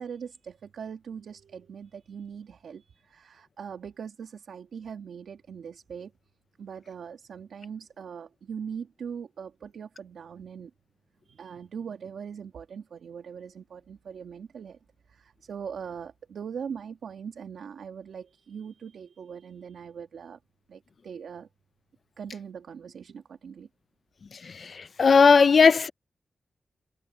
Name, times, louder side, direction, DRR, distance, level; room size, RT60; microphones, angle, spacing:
voice 1, 0.0-6.1 6.6-10.7 11.3-14.8 15.1-20.4 20.7-21.5 22.2-23.7, right 7 dB, 80° right, 1.8 m, -41 dB
voice 2, 24.4-25.9, left 5 dB, 45° left, 0.4 m, -18 dB
wide cardioid pair, 165°, 0 cm